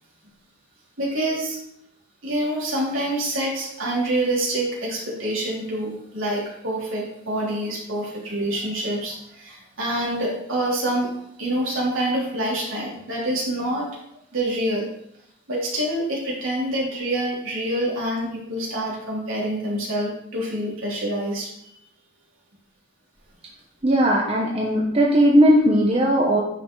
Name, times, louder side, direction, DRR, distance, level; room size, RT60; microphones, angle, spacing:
voice 1, 1.0-1.6 2.2-11.1 11.4-13.9 14.3-14.9 15.5-21.5, right 1 dB, 70° right, -4 dB, 3.2 m, -26 dB
voice 2, 23.8-26.4, equal, 25° right, -2 dB, 1.0 m, -18 dB
9.7 x 5.6 x 3.9 m, 0.74 s
head